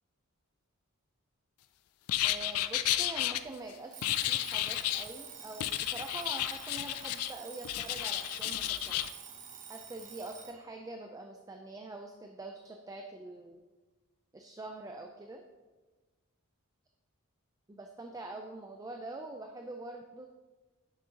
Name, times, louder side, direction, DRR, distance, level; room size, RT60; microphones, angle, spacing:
sound 1, 2.1-3.4 4.0-5.1 5.6-7.3 7.6-9.1, left 14 dB, 75° left, 0.4 m, -32 dB
voice 1, 2.2-9.0 9.7-13.6 14.3-15.4 17.7-20.3, right 2 dB, 15° right, 3 dB, 0.4 m, -45 dB
Alarm, 3.9-10.6, right 7 dB, 35° right, 0.8 m, -48 dB
9.8 x 6.5 x 2.9 m, 1.3 s
head